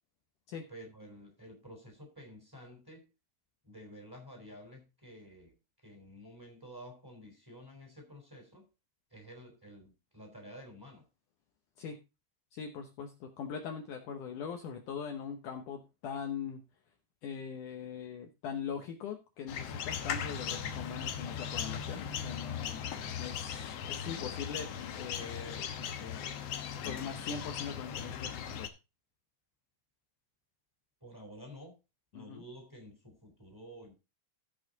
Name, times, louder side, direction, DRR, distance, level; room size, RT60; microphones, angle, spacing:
voice 1, 0.7-3.1 3.6-8.7 9.1-11.1 31.0-31.8 32.1-33.9, equal, 5° right, 3.1 m, -51 dB
voice 2, 12.5-16.6 17.2-22.9 23.2-26.2 26.8-28.7 32.2-32.4, left 6 dB, 70° left, 2.2 m, -41 dB
sound 1, 19.5-28.7, left 8 dB, 85° left, 1.4 m, -38 dB
16.0 x 5.6 x 3.9 m
omnidirectional pair, 4.4 m